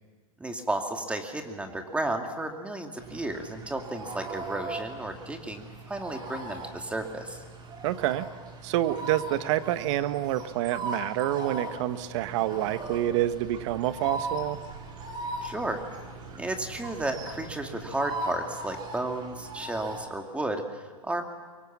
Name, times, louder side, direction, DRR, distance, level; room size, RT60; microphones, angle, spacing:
voice 1, 0.4-7.4 15.4-15.8 16.4-21.2, right 2 dB, 5° right, 4 dB, 2.3 m, -33 dB
sound 1, 3.0-20.1, right 2 dB, 25° right, 3.7 m, -39 dB
voice 2, 7.8-8.3 8.6-14.6, right 13 dB, 55° right, 12 dB, 1.3 m, -27 dB
sound 2, 12.1-18.0, right 5 dB, 85° right, 3.1 m, -47 dB
25.0 x 23.0 x 7.4 m, 1.6 s
hypercardioid pair, 125°, 18 cm